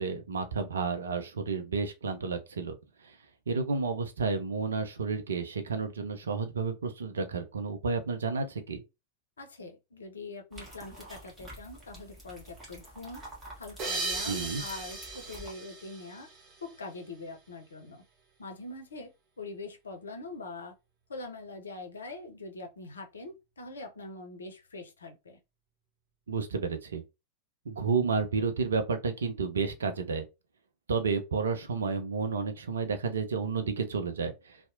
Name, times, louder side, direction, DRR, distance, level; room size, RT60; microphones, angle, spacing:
voice 1, 0.0-2.7 3.5-8.8 14.3-14.6 26.3-27.0 27.7-30.2 30.9-34.3, right 4 dB, 70° right, 0.5 m, -31 dB
voice 2, 9.4-13.2 13.6-16.3 16.6-18.0 18.4-19.1 19.4-20.7 21.1-25.4, left 2 dB, 70° left, 0.5 m, -43 dB
sound 1, 10.5-15.5, right 1 dB, 10° right, 1.2 m, -48 dB
sound 2, 13.8-16.9, right 3 dB, 35° right, 0.9 m, -37 dB
2.7 x 2.0 x 2.5 m
figure-of-eight pair, 90°, 0 cm